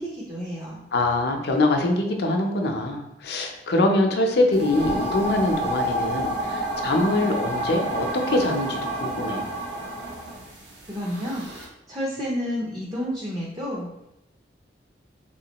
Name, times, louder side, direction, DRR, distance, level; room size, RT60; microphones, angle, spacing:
voice 1, 0.0-0.9 10.9-11.5 11.9-14.0, equal, 25° right, -4 dB, 0.5 m, -30 dB
voice 2, 0.9-9.5, left 2 dB, 65° left, 3 dB, 0.5 m, -23 dB
sound 1, 4.5-11.6, right 1 dB, 70° right, 0.8 m, -29 dB
3.5 x 3.1 x 2.9 m, 0.85 s
head